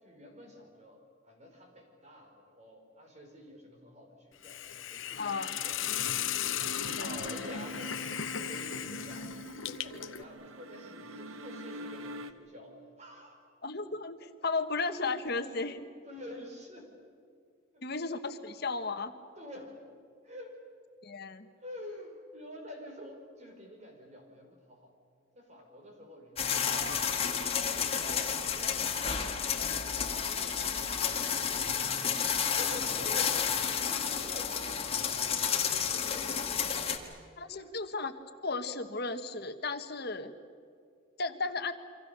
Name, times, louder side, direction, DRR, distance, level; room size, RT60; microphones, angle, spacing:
voice 1, 0.0-6.2 7.0-8.0 8.3-9.3 9.7-13.4 16.0-16.9 17.7-17.8 18.6-18.7 19.4-19.8 20.2-20.6 21.6-24.9 25.3-26.9 27.6-32.1 32.6-33.4 33.8-36.4 37.4-37.7, left 1 dB, 35° right, 3 dB, 4.7 m, -48 dB
Hiss, 4.4-10.2, left 10 dB, 75° left, 0.9 m, -36 dB
voice 2, 5.2-5.6 7.0-7.1 13.6-15.9 17.8-19.1 21.0-21.5 26.7-27.3 37.4-38.1 38.4-40.3 41.2-41.7, left 3 dB, 50° left, 8 dB, 1.5 m, -35 dB
sound 1, 5.3-12.3, right 1 dB, 90° right, 1.3 m, -45 dB
sound 2, 26.4-37.0, left 7 dB, 30° left, 2.0 m, -31 dB
29.0 x 25.0 x 6.9 m, 2.3 s
head